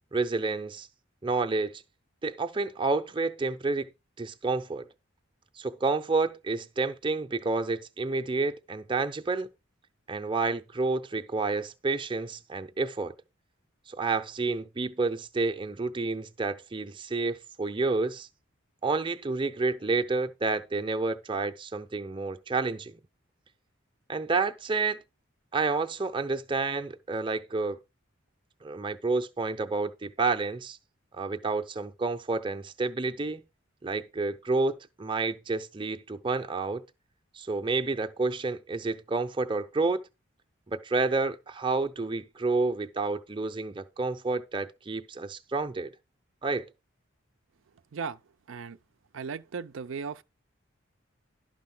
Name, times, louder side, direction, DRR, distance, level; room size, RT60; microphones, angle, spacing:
voice 1, 0.1-0.9 1.2-1.8 2.2-3.9 4.2-4.9 5.6-9.5 10.1-13.1 13.9-18.3 18.8-23.0 24.1-25.0 25.5-27.8 28.6-30.8 31.1-33.4 33.8-36.8 37.3-40.0 40.7-45.9 46.4-46.7, right 3 dB, 25° right, 0.6 m, -29 dB
voice 2, 49.1-50.2, right 5 dB, 75° right, 0.5 m, -36 dB
11.5 x 4.2 x 5.9 m
head